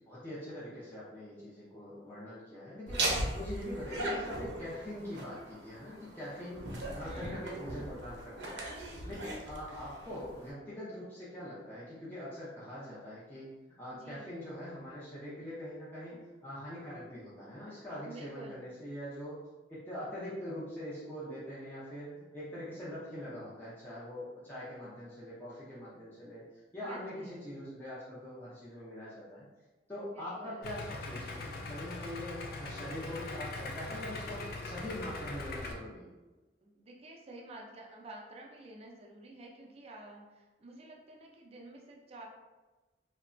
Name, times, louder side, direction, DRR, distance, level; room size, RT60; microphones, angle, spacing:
voice 1, 0.1-3.1 3.3-6.7 6.9-8.6 9.0-13.5 13.8-19.4 19.7-26.4 26.7-29.4 29.9-36.1, equal, 10° left, -10 dB, 0.5 m, -43 dB
Laughter, 2.9-10.5, right 1 dB, 80° right, 0.6 m, -38 dB
voice 2, 7.0-7.4 8.3-8.5 13.9-14.4 16.1-16.2 18.0-18.7 26.8-27.4 30.2-30.7 36.6-42.2, right 2 dB, 35° right, 0 dB, 0.4 m, -50 dB
Idling, 30.6-35.7, left 2 dB, 60° left, 0.4 m, -41 dB
2.8 x 2.2 x 2.5 m, 1.2 s
head